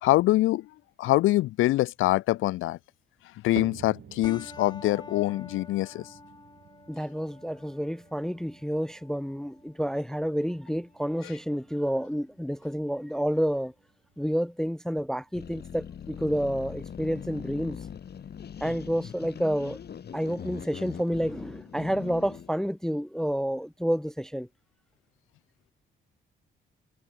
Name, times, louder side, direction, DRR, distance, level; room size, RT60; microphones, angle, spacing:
voice 1, 0.0-0.7 1.0-2.8 3.4-6.1, left 17 dB, 85° left, 0.8 m, -24 dB
sound 1, 3.6-19.9 20.2-20.7 21.3-21.4 22.2-22.3, right 10 dB, 65° right, 4.5 m, -51 dB
sound 2, 4.2-13.2, left 3 dB, 20° left, 2.0 m, -50 dB
voice 2, 6.9-13.7 14.2-17.8 18.6-19.8 20.1-24.5, equal, 5° left, 0.5 m, -29 dB
sound 3, 15.3-22.5, left 8 dB, 55° left, 4.9 m, -41 dB
cardioid pair, 90°, 20 cm